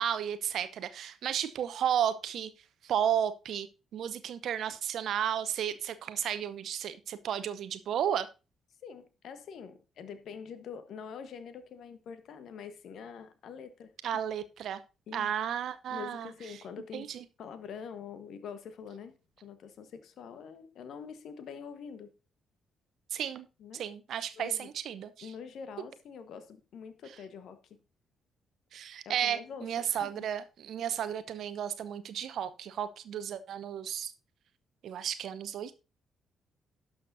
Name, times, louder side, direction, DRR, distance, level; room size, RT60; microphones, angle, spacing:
voice 1, 0.0-2.5 2.8-3.7 3.9-8.3 14.0-14.8 15.1-16.3 16.9-17.2 23.1-23.5 23.7-25.3 28.7-34.1 34.8-35.8, right 9 dB, 60° right, 0.8 m, -33 dB
voice 2, 8.8-13.9 15.1-15.3 15.9-17.1 17.4-19.1 19.4-22.1 23.6-23.8 24.4-24.7 25.2-27.8 29.0-30.1, left 6 dB, 60° left, 1.2 m, -45 dB
18.0 x 6.4 x 2.7 m
figure-of-eight pair, 40°, 0 cm